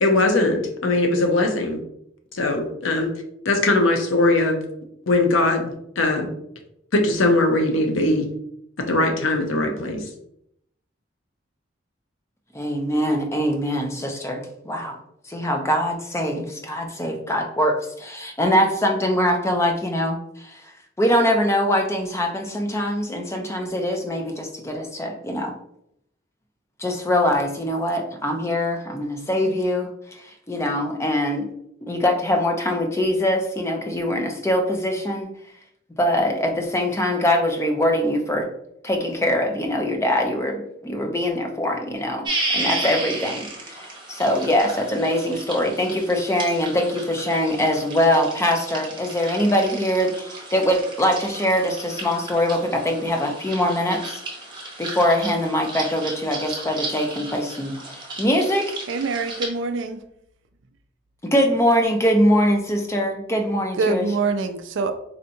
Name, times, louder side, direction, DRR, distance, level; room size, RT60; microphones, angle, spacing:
voice 1, 0.0-1.8 2.3-3.1 3.4-4.6 5.1-6.3 6.9-8.3 8.8-10.1, left 2 dB, 90° left, 4 dB, 0.7 m, -20 dB
voice 2, 12.5-15.0 15.3-20.6 21.0-25.5 26.8-31.5 31.8-35.3 36.0-38.5 38.8-42.3 42.5-54.2 54.8-58.7 61.2-64.0, equal, 15° left, 3 dB, 0.5 m, -23 dB
sound 1, 42.2-59.5, right 2 dB, 25° right, 0.8 m, -33 dB
voice 3, 58.9-60.0 63.8-64.9, right 4 dB, 70° right, 8 dB, 0.4 m, -24 dB
4.2 x 2.7 x 2.6 m, 0.74 s
head